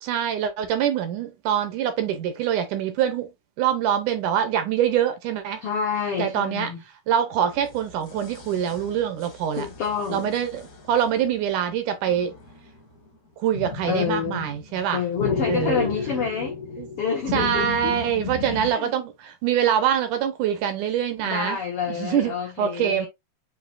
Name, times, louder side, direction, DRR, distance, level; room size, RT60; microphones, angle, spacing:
voice 1, 0.0-3.3 3.6-5.6 6.2-6.7 7.1-9.7 10.1-12.3 13.4-15.0 15.5-15.9 16.8-16.9 17.3-21.6 21.9-23.1, right 9 dB, 75° right, 1.9 m, -24 dB
voice 2, 5.6-6.8 9.5-10.4 13.8-14.5 14.9-16.6 17.0-17.9 18.4-18.9 21.2-23.1, left 6 dB, 80° left, 1.3 m, -28 dB
sound 1, 7.4-11.3 12.0-13.1 13.5-18.7, left 4 dB, 55° left, 1.0 m, -34 dB
7.2 x 2.7 x 2.5 m
omnidirectional pair, 4.1 m